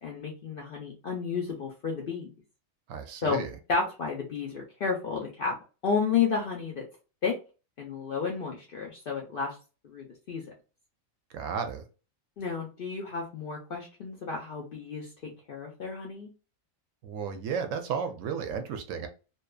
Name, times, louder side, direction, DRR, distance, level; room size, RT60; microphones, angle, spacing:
voice 1, 0.0-2.3 3.2-3.4 3.7-5.5 5.8-6.8 7.2-7.3 7.8-9.6 9.8-10.4 12.4-16.3, left 5 dB, 60° left, 0.5 m, -31 dB
voice 2, 2.9-3.5 11.3-11.8 17.0-19.1, right 6 dB, 75° right, 0.9 m, -33 dB
2.7 x 2.2 x 2.2 m
omnidirectional pair, 1.4 m